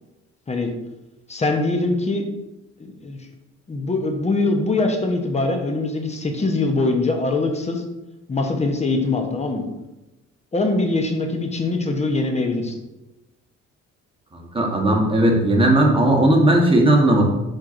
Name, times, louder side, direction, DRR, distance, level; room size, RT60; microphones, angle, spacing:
voice 1, 1.3-2.2 2.8-3.2 3.7-7.8 8.3-9.6 10.5-12.7, left 2 dB, 20° left, 4 dB, 0.8 m, -22 dB
voice 2, 14.3-17.2, right 1 dB, 15° right, -1 dB, 1.0 m, -17 dB
4.5 x 4.5 x 2.5 m, 0.99 s
cardioid pair, 90°, 30 cm